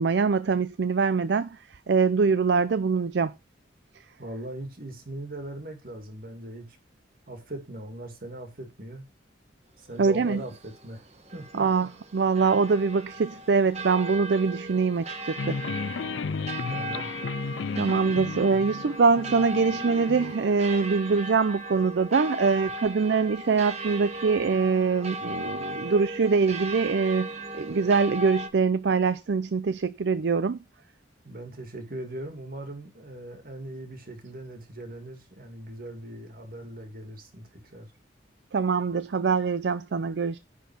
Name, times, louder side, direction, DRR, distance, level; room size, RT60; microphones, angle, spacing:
voice 1, 0.0-1.5 1.9-3.3 10.0-10.4 11.5-15.6 17.8-27.3 27.5-30.6 38.5-40.4, right 5 dB, 65° right, 0.4 m, -24 dB
voice 2, 4.2-6.8 7.3-9.1 9.8-11.6 16.7-17.1 31.2-37.9, right 1 dB, 50° right, 2.3 m, -40 dB
sound 1, 9.9-28.5, right 1 dB, 35° right, 1.4 m, -37 dB
sound 2, 15.4-20.3, left 5 dB, 80° left, 0.4 m, -34 dB
10.5 x 4.5 x 6.1 m
head